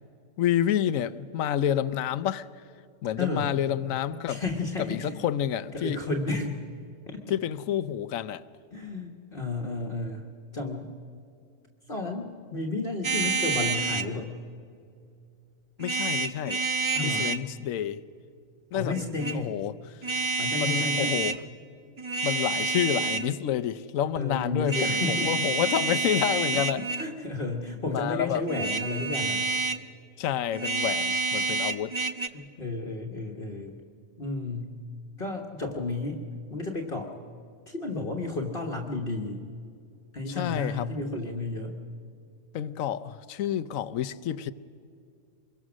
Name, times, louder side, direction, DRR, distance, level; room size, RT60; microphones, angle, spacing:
voice 1, 0.4-2.5 3.0-4.4 4.9-6.0 7.3-8.4 15.8-16.6 17.0-18.0 18.7-19.0 19.3-20.0 20.5-21.3 22.2-26.8 27.9-28.4 30.2-31.9 40.3-41.1 42.5-44.5, left 10 dB, 85° left, 1.1 m, -29 dB
voice 2, 3.2-3.5 4.3-5.2 5.7-6.6 7.1-7.2 8.7-10.9 11.9-14.4 16.9-17.3 18.7-19.6 20.4-21.2 24.1-25.4 26.7-29.5 32.3-33.8 34.2-34.7 35.2-36.2 36.5-37.1 37.7-39.4 40.1-41.8, left 3 dB, 45° left, 1.5 m, -32 dB
sound 1, 13.0-14.1 15.8-17.4 18.9-19.4 20.0-21.4 22.0-23.3 24.7-27.1 28.5-29.9 30.5-32.3, right 3 dB, 35° right, 0.5 m, -28 dB
24.5 x 22.0 x 6.2 m
omnidirectional pair, 1.4 m